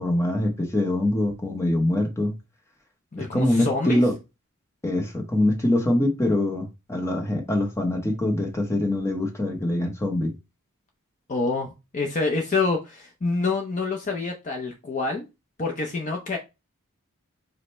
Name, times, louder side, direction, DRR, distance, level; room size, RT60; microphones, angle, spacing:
voice 1, 0.0-2.3 3.2-4.1 4.8-10.3, left 1 dB, 15° left, 0.9 m, -24 dB
voice 2, 3.1-4.0 11.3-15.2 15.6-16.4, left 3 dB, 35° left, 0.6 m, -27 dB
5.0 x 2.1 x 4.2 m
head